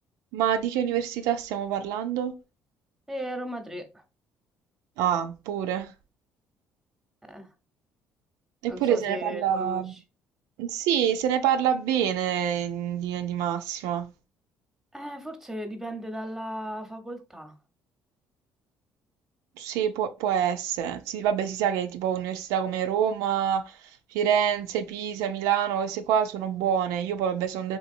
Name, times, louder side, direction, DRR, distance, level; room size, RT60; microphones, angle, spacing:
voice 1, 0.3-2.4 5.0-5.9 8.6-9.9 10.6-14.1 19.6-27.8, right 9 dB, 85° right, 0.4 m, -26 dB
voice 2, 3.1-4.0 7.3-7.5 8.7-10.0 14.9-17.5, equal, 5° right, 0.8 m, -36 dB
3.3 x 2.8 x 2.6 m
cardioid pair, 90°, 6 cm